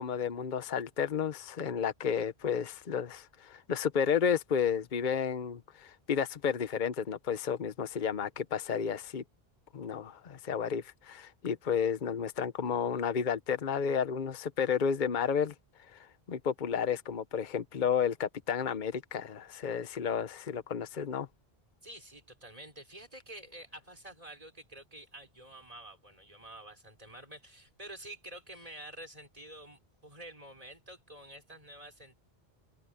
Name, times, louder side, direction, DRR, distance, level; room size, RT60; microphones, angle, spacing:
voice 1, 0.0-9.2 9.7-15.5 15.8-21.3, left 7 dB, 50° left, 1.0 m, -32 dB
voice 2, 21.8-32.2, right 1 dB, 35° right, 5.6 m, -49 dB
omnidirectional pair, 1.0 m